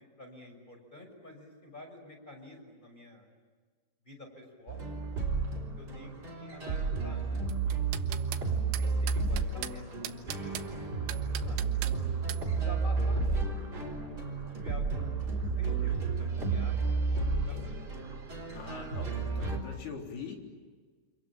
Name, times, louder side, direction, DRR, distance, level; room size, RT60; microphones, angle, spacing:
voice 1, 0.2-3.3 4.0-4.9 5.8-7.8 8.8-10.9 11.4-11.6 12.5-13.9 14.6-17.0 17.4-18.2, left 1 dB, 10° left, 3 dB, 5.9 m, -50 dB
sound 1, 4.7-19.6, right 4 dB, 20° right, 4.4 m, -32 dB
sound 2, 7.5-8.5 8.7-9.7 10.1-10.7 11.1-12.0 12.3-12.4, right 12 dB, 85° right, 3.4 m, -40 dB
voice 2, 18.5-20.4, left 5 dB, 65° left, 1 dB, 5.7 m, -42 dB
29.5 x 27.5 x 7.3 m, 1.5 s
omnidirectional pair, 5.2 m